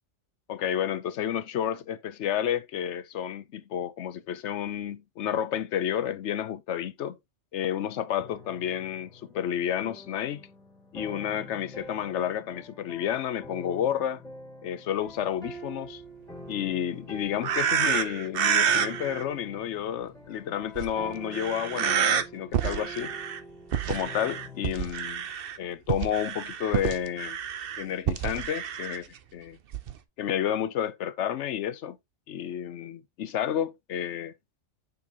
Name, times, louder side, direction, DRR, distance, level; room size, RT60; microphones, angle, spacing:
voice 1, 0.5-7.2 7.5-10.5 10.9-14.2 14.6-16.0 16.5-23.2 23.9-25.3 25.6-27.4 27.8-29.6 30.2-32.0 32.3-34.3, left 10 dB, 75° left, 1.0 m, -31 dB
sound 1, 8.2-24.7, equal, 5° left, 2.0 m, -45 dB
sound 2, 17.4-19.2 20.8-20.9 21.3-22.2 22.5-23.4 23.7-25.6 25.9-29.0 29.7-29.9, right 8 dB, 55° right, 0.9 m, -28 dB
7.2 x 6.4 x 2.8 m
omnidirectional pair, 1.2 m